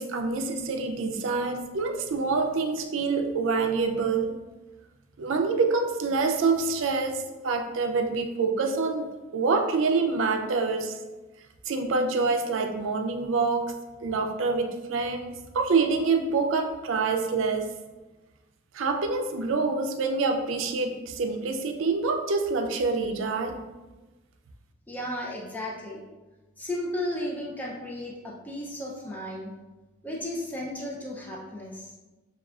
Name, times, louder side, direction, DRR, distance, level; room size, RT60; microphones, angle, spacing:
voice 1, 0.0-4.4 5.2-10.9 11.7-13.7 14.0-17.7 18.7-23.6, right 4 dB, 85° right, 5 dB, 0.4 m, -26 dB
voice 2, 24.9-26.0 26.6-29.5 30.0-31.9, left 1 dB, 10° left, -2 dB, 0.4 m, -34 dB
6.7 x 2.3 x 2.3 m, 1.2 s
head